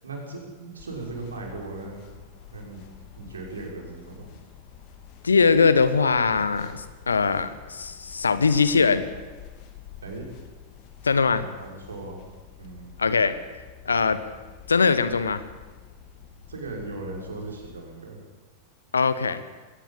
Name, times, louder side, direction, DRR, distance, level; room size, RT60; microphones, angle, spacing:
voice 1, 0.0-2.1 2.5-2.8 3.2-4.3 10.0-10.3 11.4-12.3 12.6-12.9 16.5-18.2, right 2 dB, 70° right, 0 dB, 5.9 m, -37 dB
sound 1, 0.8-17.8, left 8 dB, 45° left, 3.0 m, -48 dB
voice 2, 5.2-9.0 11.0-11.5 13.0-13.4 13.8-14.2 14.7-15.4 18.9-19.4, left 5 dB, 75° left, 13 dB, 1.3 m, -21 dB
20.5 x 18.0 x 7.5 m, 1.3 s
figure-of-eight pair, 90°, 0 cm